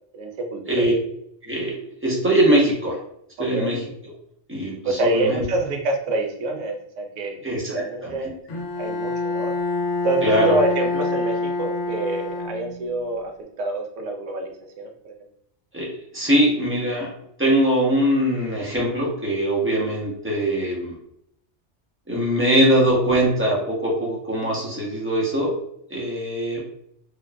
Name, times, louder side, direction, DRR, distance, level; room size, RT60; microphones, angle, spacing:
voice 1, 0.1-0.9 3.5-3.7 4.8-8.3 8.8-9.6 10.0-13.3 13.6-15.1, right 2 dB, 85° right, 3 dB, 1.0 m, -27 dB
voice 2, 1.5-3.0 3.4-3.8 4.5-5.4 7.4-8.3 10.2-10.5 15.7-17.1 17.4-20.9 22.1-25.5 25.9-26.6, right 1 dB, 15° right, -4 dB, 0.6 m, -22 dB
Bowed string instrument, 8.5-13.0, left 3 dB, 85° left, 1.0 m, -26 dB
3.6 x 2.3 x 2.2 m, 0.73 s
omnidirectional pair, 1.2 m